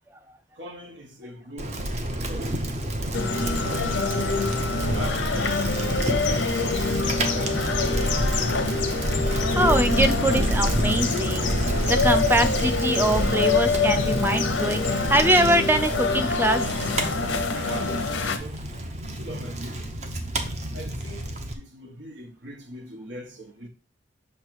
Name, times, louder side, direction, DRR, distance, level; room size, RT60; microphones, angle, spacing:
voice 1, 0.6-2.7 3.3-4.3 4.9-9.3 17.5-18.6 19.2-19.9 20.7-23.7, right 1 dB, 75° right, 1.2 m, -42 dB
Bicycle, 1.6-21.5, right 1 dB, 35° right, 0.8 m, -28 dB
sound 1, 3.1-18.4, left 4 dB, 85° left, 0.8 m, -26 dB
voice 2, 9.5-16.7, right 1 dB, 10° right, 0.4 m, -23 dB
6.2 x 3.3 x 4.6 m
head